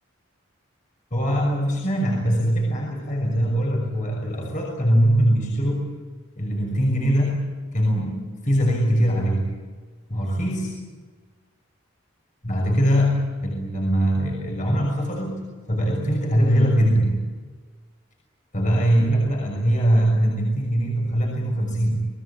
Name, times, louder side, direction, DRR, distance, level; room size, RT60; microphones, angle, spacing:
voice 1, 1.1-5.8 6.4-9.5 10.1-10.9 12.4-15.4 15.7-17.2 18.5-22.0, equal, 40° left, -2 dB, 6.2 m, -22 dB
29.5 x 20.0 x 8.7 m, 1.4 s
head